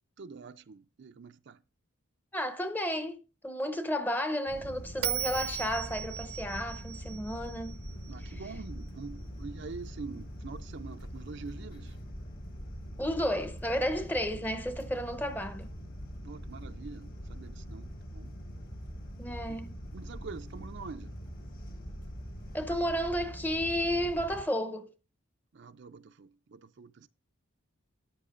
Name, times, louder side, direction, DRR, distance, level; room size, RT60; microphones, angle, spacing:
voice 1, 0.2-1.6 8.1-12.0 16.2-18.3 19.5-19.6 19.9-21.1 25.5-27.1, right 4 dB, 50° right, 0.4 m, -45 dB
voice 2, 2.3-7.8 13.0-15.7 19.2-19.8 22.5-24.9, equal, 10° left, 0.7 m, -32 dB
sound 1, 4.5-24.4, equal, 45° left, 1.8 m, -43 dB
Bell, 5.0-8.3, right 12 dB, 85° right, 0.8 m, -37 dB
13.5 x 9.1 x 2.5 m
head